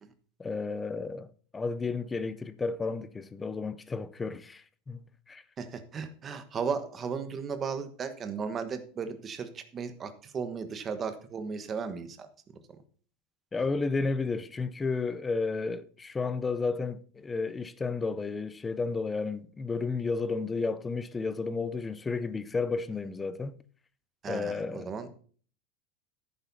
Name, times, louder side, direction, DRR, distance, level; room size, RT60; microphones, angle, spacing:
voice 1, 0.4-1.3 1.5-5.0 5.3-5.4 13.5-23.6 24.3-24.9, left 4 dB, 10° left, 0.5 m, -32 dB
voice 2, 5.6-12.3 12.7-12.8 24.2-25.1, right 6 dB, 20° right, 1.2 m, -35 dB
11.0 x 9.2 x 4.1 m
supercardioid pair, 175°, 0 cm